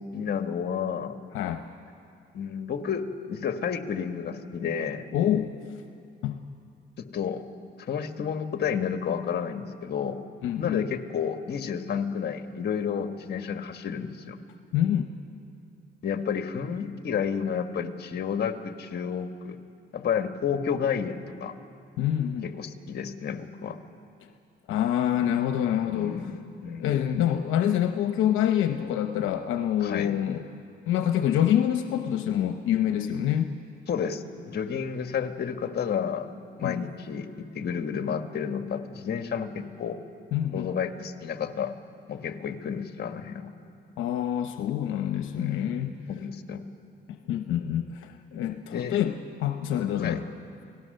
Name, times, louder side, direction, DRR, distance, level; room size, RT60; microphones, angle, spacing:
voice 1, 0.1-1.2 2.3-5.0 7.0-7.4 7.8-10.2 10.6-14.4 16.0-19.6 19.9-21.5 22.4-23.8 25.9-27.0 29.8-30.1 33.9-36.3 36.6-37.3 37.5-40.0 40.5-41.7 42.1-43.5 45.3-45.8 46.1-46.6 48.7-49.0 50.0-50.2, left 7 dB, 55° left, 7 dB, 1.6 m, -31 dB
voice 2, 5.1-5.5 6.2-6.4 10.4-10.8 14.7-15.1 22.0-22.5 24.7-26.3 26.8-30.4 30.9-33.5 36.6-36.9 40.3-40.7 44.0-45.9 47.1-50.2, left 10 dB, 85° left, 7 dB, 0.9 m, -26 dB
29.5 x 18.0 x 6.7 m, 2.5 s
cardioid pair, 90°, 20 cm